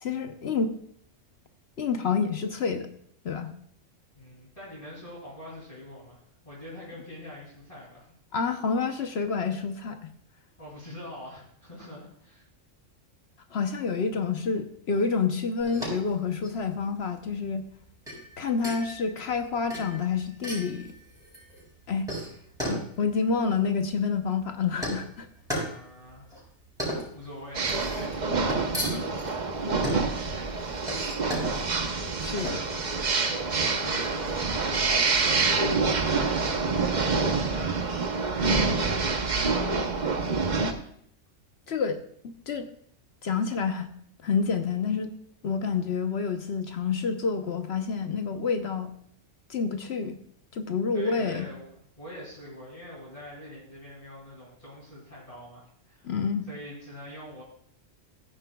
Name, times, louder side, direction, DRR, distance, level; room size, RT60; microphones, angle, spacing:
voice 1, 0.0-0.7 1.8-2.9 3.2-3.5 8.3-10.1 13.5-17.6 18.4-20.9 21.9-22.1 22.7-25.3 32.2-32.6 41.7-42.7 43.2-43.9 44.2-45.1 45.4-48.9 49.5-50.2 50.5-51.5 56.0-56.5, left 5 dB, 60° left, 7 dB, 1.0 m, -28 dB
voice 2, 4.2-8.1 10.6-12.5 25.5-26.4 27.1-30.6 33.2-39.9 50.9-56.1 56.5-57.4, left 1 dB, 30° left, -7 dB, 2.8 m, -45 dB
sound 1, 15.6-34.4, equal, 5° right, 4.9 m, -36 dB
sound 2, 27.5-40.7, right 4 dB, 40° right, 0.9 m, -27 dB
15.0 x 9.9 x 2.3 m, 0.66 s
omnidirectional pair, 1.3 m